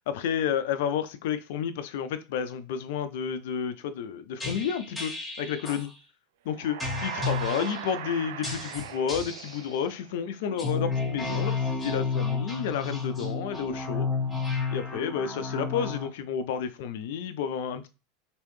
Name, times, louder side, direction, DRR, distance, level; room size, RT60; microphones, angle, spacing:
voice 1, 0.1-5.9 6.5-14.1 14.7-17.9, left 8 dB, 60° left, 0.4 m, -31 dB
sound 1, 4.4-5.8 6.8-7.9 8.4-9.6 10.5-16.1, left 4 dB, 10° left, 1.5 m, -31 dB
sound 2, 6.5-10.3, right 10 dB, 65° right, 0.3 m, -39 dB
3.1 x 3.0 x 3.1 m
figure-of-eight pair, 80°, 0 cm